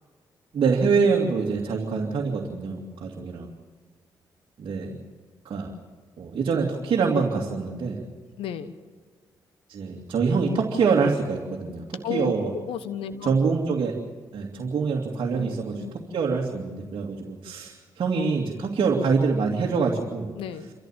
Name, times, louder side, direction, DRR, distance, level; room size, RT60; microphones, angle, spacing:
voice 1, 0.5-3.5 4.6-5.0 5.4-5.7 6.2-8.0 9.7-12.5 13.2-13.9 14.3-15.8 16.1-20.3, right 5 dB, 60° right, -2 dB, 2.6 m, -25 dB
voice 2, 8.4-8.8 12.0-13.3 15.3-16.1 20.4-20.7, left 9 dB, 80° left, 12 dB, 1.2 m, -34 dB
28.0 x 14.0 x 7.5 m, 1.5 s
hypercardioid pair, 45°, 9 cm